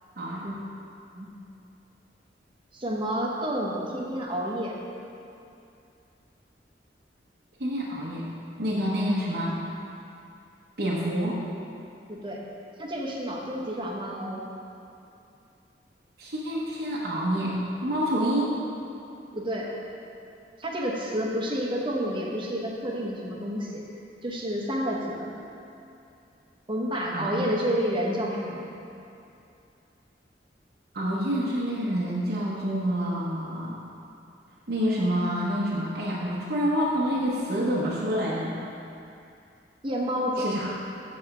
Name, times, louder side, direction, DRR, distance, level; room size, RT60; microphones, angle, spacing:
voice 1, 0.2-0.5 7.6-8.3 8.6-9.7 10.8-11.4 16.2-18.6 27.1-27.5 30.9-33.8 34.7-38.5 40.4-40.7, equal, 60° right, -6 dB, 0.9 m, -27 dB
voice 2, 2.7-4.8 12.1-12.4 12.8-14.4 19.3-19.7 20.6-23.8 24.2-25.3 26.7-28.7 39.8-40.5, equal, 30° right, -2 dB, 1.0 m, -29 dB
7.9 x 4.2 x 5.9 m, 2.6 s
head